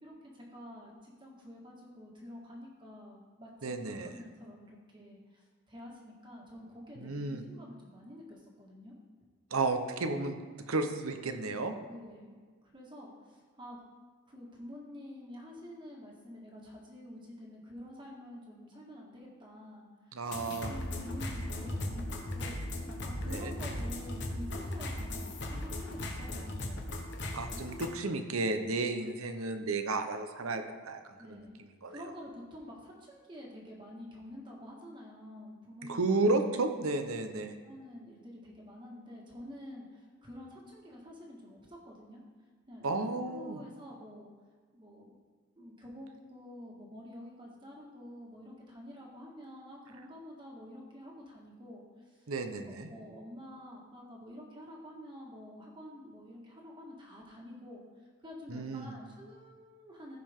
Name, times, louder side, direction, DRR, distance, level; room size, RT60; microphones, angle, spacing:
voice 1, 0.0-3.7 4.0-8.9 11.9-13.8 14.3-20.2 20.6-22.6 22.9-26.9 29.2-29.3 31.2-36.3 37.3-42.2 42.7-44.3 44.7-45.1 45.5-52.3 52.7-57.8 58.2-60.2, left 1 dB, 20° right, -2 dB, 1.7 m, -48 dB
voice 2, 3.6-4.1 7.0-7.4 9.5-10.3 10.7-11.7 20.1-20.7 23.3-23.5 27.3-31.4 31.8-32.0 35.9-37.6 42.8-43.6 52.3-52.9 58.5-58.9, right 3 dB, 80° right, 7 dB, 0.8 m, -32 dB
sound 1, 20.3-27.9, left 1 dB, 50° left, 1.1 m, -37 dB
15.0 x 5.2 x 3.7 m, 1.5 s
head